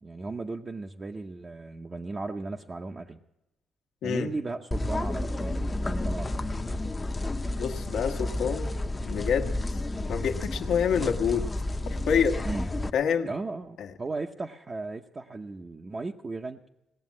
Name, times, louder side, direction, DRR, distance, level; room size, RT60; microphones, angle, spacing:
voice 1, 0.0-3.2 4.0-6.3 12.4-12.7 13.2-16.6, right 3 dB, 30° right, 2 dB, 0.7 m, -36 dB
sound 1, 4.7-12.9, left 1 dB, 20° left, 0.7 m, -31 dB
voice 2, 7.6-8.7 9.0-9.6 10.1-11.5 11.9-12.4 12.9-13.3 13.8-13.9, left 7 dB, 75° left, 5 dB, 1.2 m, -27 dB
18.5 x 7.3 x 9.7 m, 0.90 s
cardioid pair, 90°, 0 cm